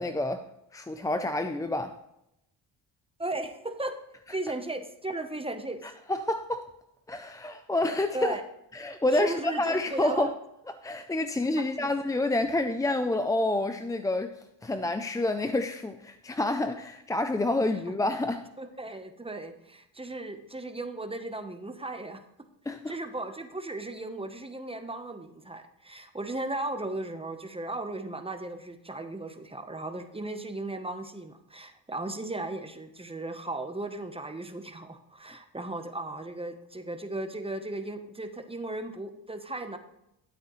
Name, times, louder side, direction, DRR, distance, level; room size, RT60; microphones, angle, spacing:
voice 1, 0.0-2.0 5.8-6.7 7.1-8.3 8.7-10.3 10.8-18.4 22.7-22.9, left 2 dB, 10° left, 0.3 m, -28 dB
voice 2, 3.2-4.0 4.3-5.8 8.1-8.4 9.1-10.3 11.6-11.9 18.6-22.2 22.9-39.8, right 2 dB, 15° right, 0.9 m, -36 dB
12.0 x 8.4 x 3.1 m
cardioid pair, 90°, 44 cm